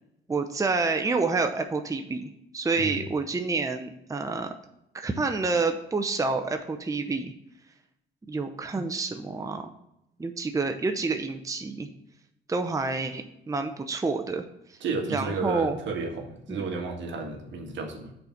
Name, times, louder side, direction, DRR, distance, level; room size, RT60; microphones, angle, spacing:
voice 1, 0.3-4.5 4.9-7.3 8.3-9.7 10.2-11.9 12.5-14.4 15.1-15.8 16.5-16.7, right 3 dB, 15° right, 6 dB, 0.7 m, -28 dB
voice 2, 14.8-18.1, right 4 dB, 70° right, 2 dB, 1.6 m, -32 dB
6.8 x 4.1 x 5.8 m, 0.80 s
cardioid pair, 90°, 20 cm